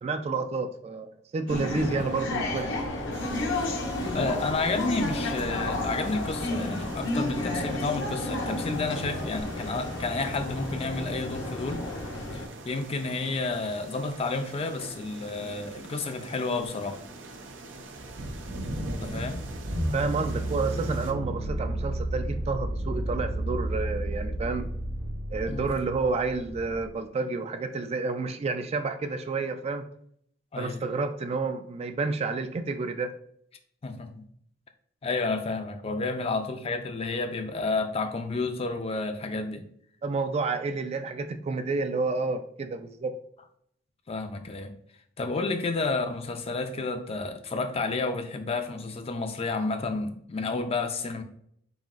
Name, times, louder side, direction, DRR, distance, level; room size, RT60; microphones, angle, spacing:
voice 1, 0.0-1.1 1.3-2.8 19.9-24.7 25.3-29.8 30.6-33.1 40.0-43.1 45.3-45.4, right 3 dB, 35° right, 8 dB, 0.3 m, -30 dB
sound 1, 1.5-12.5, left 2 dB, 70° left, 0.7 m, -32 dB
sound 2, 3.1-21.1, right 1 dB, 85° right, 0.6 m, -42 dB
voice 2, 4.1-11.8 12.3-17.0 19.0-19.4 25.5-25.7 30.5-30.8 33.8-34.2 35.0-39.6 44.1-44.7 45.2-51.2, left 3 dB, 30° left, 7 dB, 0.4 m, -30 dB
sound 3, 19.6-26.8, right 1 dB, 55° right, 1.0 m, -32 dB
4.1 x 3.8 x 2.4 m, 0.66 s
head